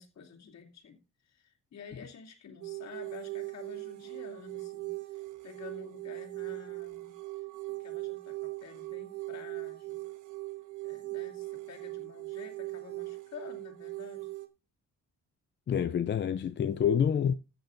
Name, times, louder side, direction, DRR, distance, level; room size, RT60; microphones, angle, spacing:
voice 1, 0.0-7.2 7.7-10.1 10.8-14.3, left 6 dB, 60° left, 2.7 m, -50 dB
sound 1, 2.6-14.5, right 21 dB, 80° right, 1.4 m, -40 dB
voice 2, 15.7-17.3, left 8 dB, 40° left, 0.5 m, -27 dB
14.0 x 9.1 x 2.6 m
cardioid pair, 90°, 30 cm